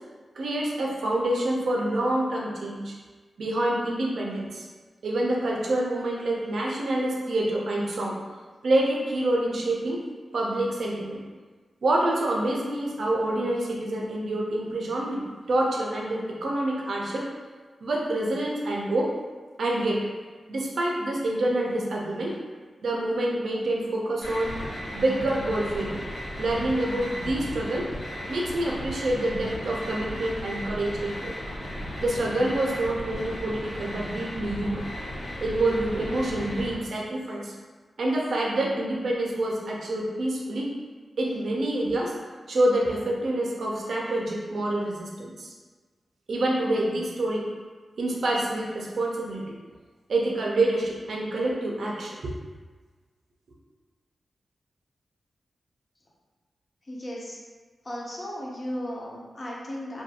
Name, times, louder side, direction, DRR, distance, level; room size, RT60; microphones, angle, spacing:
voice 1, 0.4-2.9 3.4-4.6 5.0-8.2 8.6-10.0 10.3-11.2 11.8-17.3 17.8-19.1 19.6-20.0 20.5-22.4 22.8-24.6 24.9-26.0 26.4-27.9 28.3-31.3 32.0-34.8 35.4-37.5 38.0-40.7 41.2-42.1 42.5-45.5 46.3-47.5 48.0-49.4 50.1-52.3, right 1 dB, 65° right, -3 dB, 0.4 m, -27 dB
sound 1, 24.2-36.7, equal, 75° left, 1.0 m, -36 dB
voice 2, 56.9-57.4 57.9-60.0, equal, 30° left, -4 dB, 0.4 m, -35 dB
2.4 x 2.2 x 2.7 m, 1.4 s
wide cardioid pair, 160°, 0 cm